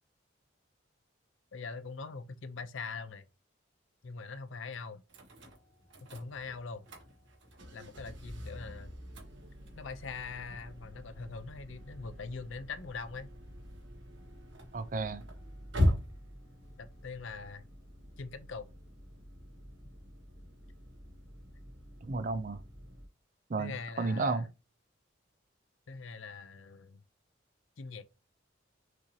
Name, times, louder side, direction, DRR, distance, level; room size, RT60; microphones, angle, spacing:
voice 1, 1.5-3.2 4.0-5.0 6.1-6.9 7.7-8.9 9.7-13.3 16.8-17.6 18.2-18.7 23.6-24.4 25.9-27.0 27.8-28.0, left 4 dB, 75° left, 0.6 m, -42 dB
sound 1, 5.1-23.1, left 1 dB, 70° right, 1.4 m, -40 dB
voice 2, 14.7-15.2 22.0-22.6 23.5-24.5, right 3 dB, 40° right, 0.5 m, -33 dB
6.1 x 2.7 x 3.1 m
head